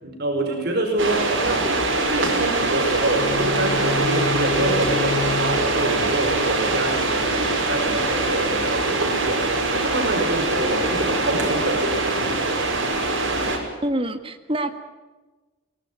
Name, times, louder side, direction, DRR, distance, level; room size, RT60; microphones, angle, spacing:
voice 1, 0.0-1.7 2.1-12.4, right 1 dB, 50° right, 2 dB, 4.9 m, -26 dB
sound 1, 1.0-13.6, right 2 dB, 70° right, 5.7 m, -23 dB
sound 2, 3.2-7.2, left 3 dB, 50° left, 1.0 m, -30 dB
voice 2, 13.8-14.7, right 1 dB, 25° right, 8 dB, 1.7 m, -25 dB
23.0 x 20.0 x 8.6 m, 1.2 s
head